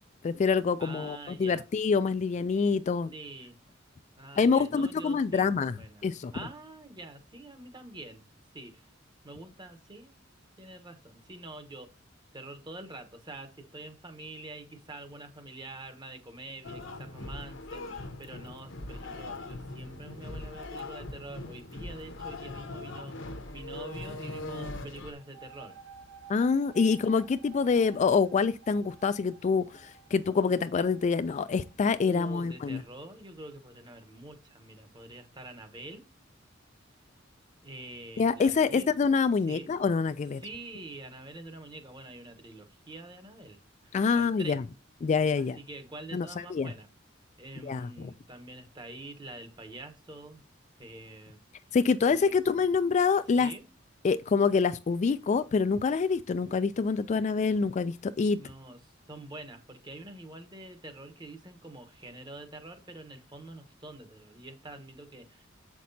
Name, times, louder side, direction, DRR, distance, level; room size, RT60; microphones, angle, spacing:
voice 1, 0.2-3.1 4.4-6.3 26.3-32.8 38.2-40.4 43.9-44.6 45.0-45.6 46.1-46.7 47.6-48.1 51.7-53.5 54.0-58.4, left 5 dB, 35° left, 0.3 m, -26 dB
voice 2, 0.8-1.6 3.1-3.6 4.2-6.1 6.3-8.2 8.5-8.8 9.2-10.2 10.6-11.9 12.3-25.8 27.8-27.9 32.0-36.0 37.6-38.9 39.5-39.8 40.4-43.6 43.8-44.6 45.4-46.9 47.4-50.4 50.8-51.4 52.0-52.3 53.4-53.7 58.3-65.5, right 2 dB, 25° right, 1.0 m, -46 dB
sound 1, 16.6-25.1, left 2 dB, 70° left, 0.9 m, -40 dB
sound 2, 25.1-32.6, right 6 dB, 85° right, 1.5 m, -54 dB
7.3 x 5.9 x 2.7 m
head